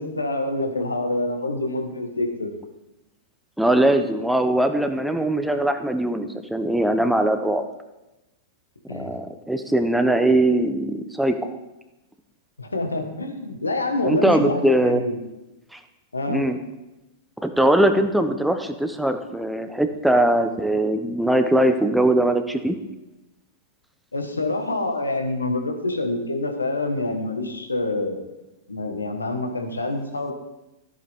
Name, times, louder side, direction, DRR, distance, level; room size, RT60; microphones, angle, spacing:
voice 1, 0.0-2.5 8.9-9.1 12.6-15.2 16.1-16.4 24.1-28.2 28.7-30.3, left 2 dB, 85° left, 4 dB, 1.6 m, -26 dB
voice 2, 3.6-7.6 8.9-11.6 14.0-15.0 15.7-15.8 16.3-16.6 17.4-22.8, right 1 dB, 5° right, 7 dB, 0.9 m, -21 dB
13.5 x 8.4 x 3.7 m, 0.99 s
figure-of-eight pair, 100°, 0 cm